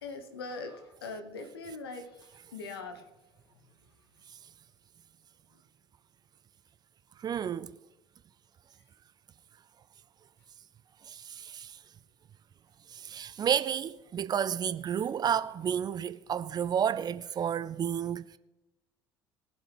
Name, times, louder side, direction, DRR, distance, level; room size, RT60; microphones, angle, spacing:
voice 1, 0.0-3.1, left 3 dB, 75° left, 1.4 m, -41 dB
voice 2, 7.2-7.8 11.1-11.8 12.9-18.2, right 8 dB, 30° right, 0.5 m, -31 dB
22.0 x 7.8 x 3.5 m
figure-of-eight pair, 60°, 13 cm